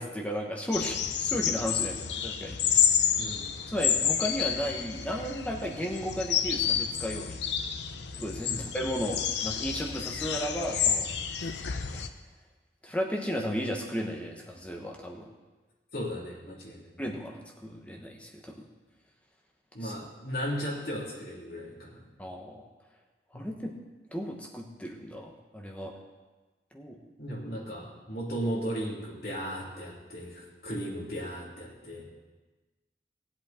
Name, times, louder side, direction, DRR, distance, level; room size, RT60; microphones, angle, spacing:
voice 1, 0.0-2.9 3.7-7.5 8.2-11.1 11.5-11.6 11.9-12.0 12.8-15.3 17.0-18.7 19.8-19.9 22.2-22.6 23.3-23.7 24.1-25.9 26.7-27.0, equal, 10° left, 0 dB, 1.0 m, -34 dB
sound 1, 0.7-12.1, left 8 dB, 85° left, 0.7 m, -29 dB
voice 2, 3.2-3.5 8.4-8.7 15.9-16.9 19.7-22.0 23.3-23.4 27.2-32.1, equal, 60° left, -5 dB, 3.4 m, -36 dB
17.5 x 8.0 x 4.3 m, 1.2 s
head